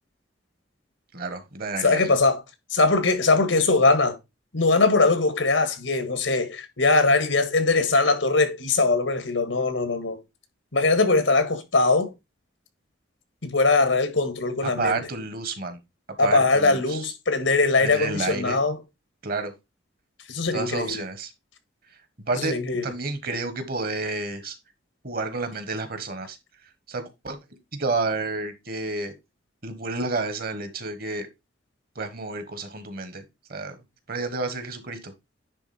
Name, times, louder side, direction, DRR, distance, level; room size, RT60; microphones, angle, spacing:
voice 1, 1.1-2.1 14.8-15.8 16.2-17.1 17.8-18.6 19.2-19.5 20.5-21.3 22.3-22.5 22.8-24.6 25.0-26.4 26.9-27.4 27.7-29.1 29.6-31.3 31.9-33.2 33.5-33.7 34.1-35.1, right 3 dB, 50° right, 1.4 m, -30 dB
voice 2, 1.8-2.4 2.7-4.2 4.5-10.2 10.7-12.1 13.4-15.0 16.2-18.8 20.3-21.0 22.4-22.9, left 3 dB, 90° left, 1.6 m, -21 dB
9.9 x 3.8 x 4.2 m
head